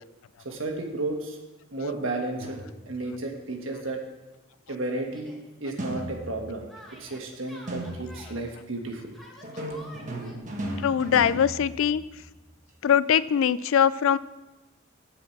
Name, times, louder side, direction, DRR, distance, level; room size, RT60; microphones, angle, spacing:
voice 1, 0.4-1.4 1.7-2.6 2.9-4.0 4.7-5.3 5.6-6.7 7.0-9.1, right 2 dB, 70° right, 2 dB, 1.5 m, -32 dB
sound 1, 2.4-3.1 5.8-6.6 7.7-8.4 9.4-12.4, right 1 dB, 40° right, 1.4 m, -36 dB
Yell, 5.1-5.4 6.7-8.4 9.1-10.4, equal, ahead, 1.4 m, -49 dB
voice 2, 10.8-12.0 12.8-14.2, left 8 dB, 70° left, 17 dB, 0.3 m, -22 dB
9.5 x 4.9 x 7.3 m, 1.1 s
head